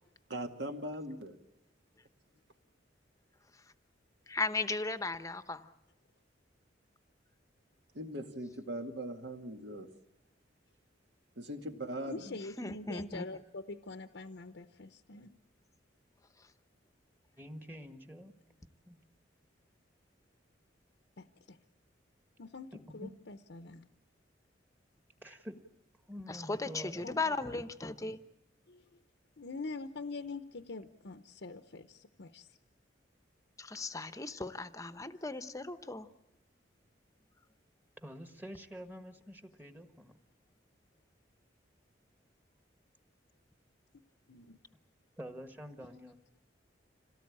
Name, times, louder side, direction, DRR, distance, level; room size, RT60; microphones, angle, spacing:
voice 1, 0.3-1.4 7.9-9.9 11.4-12.3, right 1 dB, 65° right, 5 dB, 2.2 m, -40 dB
voice 2, 4.3-5.7 12.3-13.2 26.3-28.2 33.6-36.1, left 3 dB, 20° left, 11 dB, 0.9 m, -37 dB
voice 3, 12.1-15.3 21.2-21.6 22.4-23.9 27.0-27.1 28.7-29.0 29.4-32.5 44.3-44.6, left 3 dB, 70° left, 8 dB, 0.8 m, -44 dB
voice 4, 17.4-18.3 18.8-19.0 22.7-23.2 25.2-25.6 26.1-27.6 38.0-40.1 45.2-46.2, equal, 10° right, 7 dB, 1.5 m, -47 dB
27.0 x 18.0 x 8.7 m, 0.86 s
head